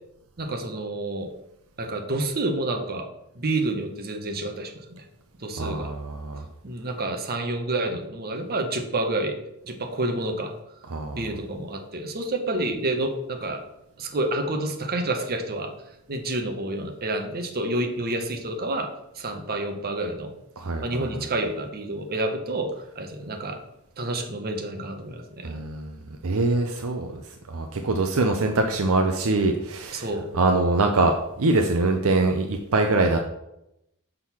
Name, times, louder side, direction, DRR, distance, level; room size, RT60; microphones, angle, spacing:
voice 1, 0.4-1.3 1.8-3.1 3.3-4.7 5.4-5.9 6.6-9.4 9.6-10.5 11.1-13.6 14.0-15.7 16.1-18.9 19.2-20.3 20.8-23.6 24.0-25.5 29.9-30.3, right 2 dB, 45° right, 5 dB, 1.0 m, -29 dB
voice 2, 5.6-6.4 10.9-11.2 20.6-21.3 25.4-25.9 26.2-27.2 27.5-30.1 30.3-33.2, right 2 dB, 70° right, 4 dB, 0.6 m, -23 dB
6.3 x 3.8 x 5.8 m, 0.84 s
head